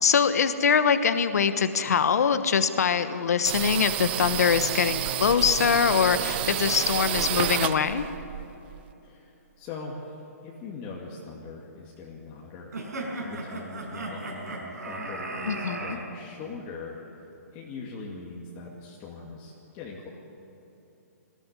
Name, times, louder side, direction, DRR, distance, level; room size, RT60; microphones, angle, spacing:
voice 1, 0.0-8.0 15.5-16.0, left 6 dB, 70° left, 11 dB, 1.2 m, -23 dB
sound 1, 3.4-8.9, right 13 dB, 35° right, 0.7 m, -30 dB
voice 2, 9.0-17.3 17.5-20.1, left 4 dB, 25° left, -3 dB, 2.5 m, -41 dB
sound 2, 12.7-16.0, right 2 dB, 85° right, 5.6 m, -35 dB
20.5 x 15.5 x 9.8 m, 3.0 s
hypercardioid pair, 145°, 9 cm